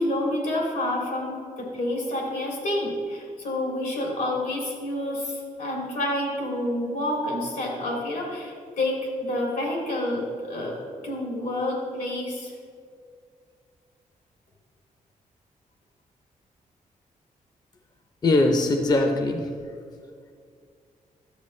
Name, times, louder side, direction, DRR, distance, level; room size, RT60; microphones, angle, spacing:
voice 1, 0.0-10.8 11.0-12.5, left 1 dB, 85° left, -2 dB, 2.5 m, -28 dB
voice 2, 18.2-19.5, left 2 dB, 30° left, 4 dB, 0.6 m, -21 dB
12.0 x 7.3 x 3.2 m, 2.2 s
cardioid pair, 120°, 14 cm